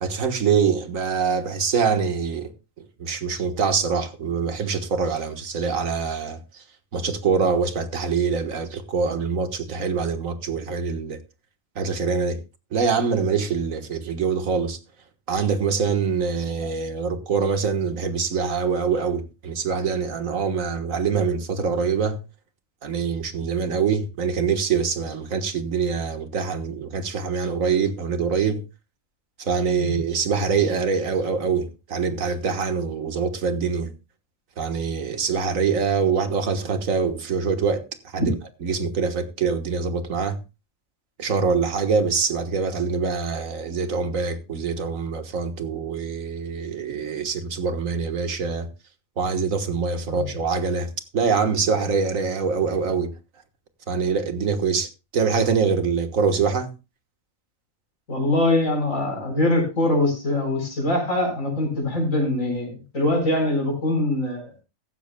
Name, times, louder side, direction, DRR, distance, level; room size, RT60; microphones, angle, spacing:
voice 1, 0.0-2.5 3.0-6.6 6.9-11.2 11.8-12.4 12.7-14.8 15.3-22.2 22.8-28.6 29.4-33.9 34.6-37.8 38.1-38.3 38.6-40.4 41.2-48.7 49.2-53.1 53.9-56.7, right 5 dB, 85° right, 1.8 m, -24 dB
voice 2, 58.1-64.4, left 1 dB, 80° left, 5.2 m, -23 dB
15.5 x 14.0 x 2.3 m
omnidirectional pair, 1.4 m